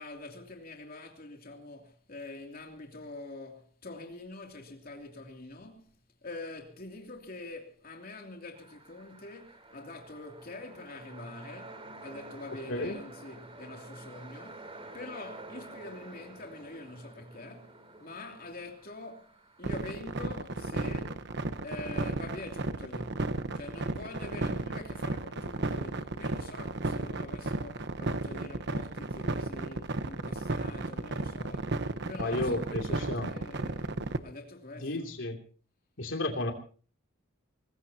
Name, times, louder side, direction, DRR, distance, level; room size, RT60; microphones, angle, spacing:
voice 1, 0.0-5.9 6.2-14.7 14.9-21.2 21.6-23.3 23.5-31.8 32.1-35.1, left 2 dB, 45° left, 3.0 m, -45 dB
sound 1, 8.5-19.9, right 2 dB, 30° right, 3.4 m, -49 dB
sound 2, 19.6-34.2, right 2 dB, 60° right, 1.1 m, -33 dB
voice 2, 32.2-33.3 34.8-35.4 36.0-36.5, left 2 dB, 65° left, 2.9 m, -32 dB
23.5 x 20.0 x 2.9 m
head